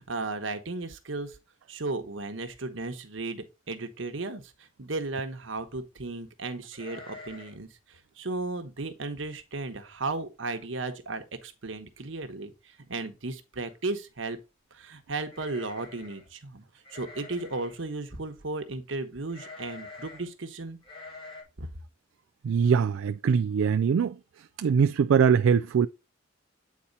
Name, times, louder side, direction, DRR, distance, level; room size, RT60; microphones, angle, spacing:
voice 1, 0.0-1.4 1.7-14.4 14.7-16.6 16.9-20.8 21.6-21.7, right 3 dB, 75° right, 1.2 m, -35 dB
sound 1, 6.7-7.7 7.9-8.0 8.5-8.8 9.3-9.4 9.7-10.2 10.6-10.7 11.8-11.9 12.2-12.6 15.3-16.3 16.8-17.8 19.3-20.3 20.8-21.4, left 3 dB, 25° left, 1.9 m, -46 dB
voice 2, 22.4-24.2 24.6-25.9, right 6 dB, 90° right, 0.3 m, -22 dB
8.6 x 4.3 x 4.0 m
head